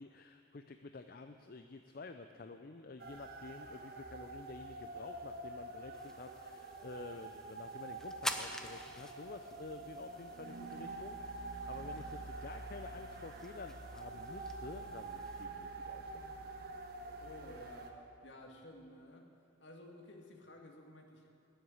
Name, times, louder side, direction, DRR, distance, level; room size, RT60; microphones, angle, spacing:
voice 1, 0.0-16.4, left 3 dB, 50° left, 7 dB, 0.6 m, -50 dB
sound 1, 3.0-17.9, right 2 dB, 55° right, 1.4 m, -47 dB
sound 2, 5.9-15.4, left 1 dB, 5° left, 0.7 m, -48 dB
voice 2, 17.2-19.3 19.6-21.3, left 1 dB, 70° left, 2 dB, 2.1 m, -54 dB
19.0 x 8.0 x 9.6 m, 2.5 s
head